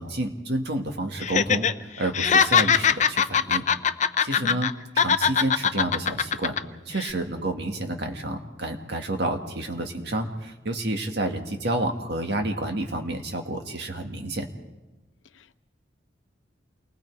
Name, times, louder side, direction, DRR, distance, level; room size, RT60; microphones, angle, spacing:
voice 1, 0.0-1.7 2.0-3.6 4.2-6.5 6.9-14.5, right 1 dB, 60° right, 2.0 m, -29 dB
Laughter, 1.2-1.7 2.0-4.7 5.0-6.6 7.0-7.1, left 7 dB, 40° left, 0.6 m, -21 dB
voice 2, 4.3-4.7 15.2-15.6, left 3 dB, 90° left, 0.7 m, -42 dB
28.5 x 20.0 x 4.7 m
head